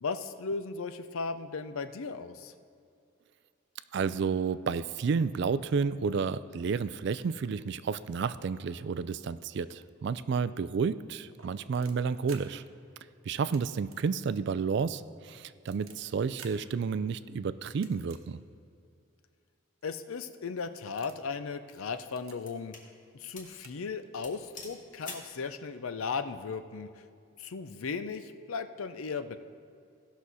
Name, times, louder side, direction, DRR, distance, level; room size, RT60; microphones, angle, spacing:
voice 1, 0.0-2.5 19.8-22.7 23.1-26.9 27.4-29.4, left 4 dB, 85° left, 11 dB, 0.6 m, -36 dB
voice 2, 3.9-12.6 13.3-18.4, right 5 dB, 55° right, 15 dB, 0.3 m, -31 dB
sound 1, 11.3-12.4 13.3-13.6 13.9-14.0 14.4-14.5 15.1-16.0 16.4-16.5 17.7-18.2 18.8-18.9 19.8-19.9 20.3-20.5 20.8-21.3 22.0-22.4 23.2-23.3 23.5-23.7 24.0-24.1, right 7 dB, 85° right, 1.0 m, -52 dB
sound 2, 20.7-21.0 21.7-22.9 23.3-23.6 23.9-24.0 24.2-25.4, left 3 dB, 40° left, 1.6 m, -46 dB
16.5 x 6.2 x 4.1 m, 2.5 s
head